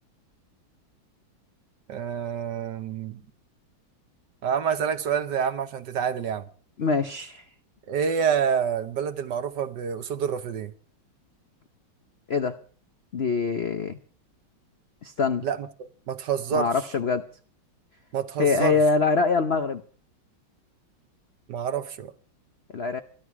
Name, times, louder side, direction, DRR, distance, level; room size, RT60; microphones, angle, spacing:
voice 1, 1.9-3.2 4.4-6.5 7.9-10.7 15.4-16.7 18.1-18.8 21.5-22.1, right 7 dB, 60° right, 1.5 m, -27 dB
voice 2, 6.8-7.4 12.3-12.5 13.1-14.0 15.0-15.5 16.5-17.2 18.4-19.8 22.7-23.0, left 4 dB, 60° left, 0.6 m, -24 dB
25.5 x 11.5 x 4.7 m
omnidirectional pair, 2.3 m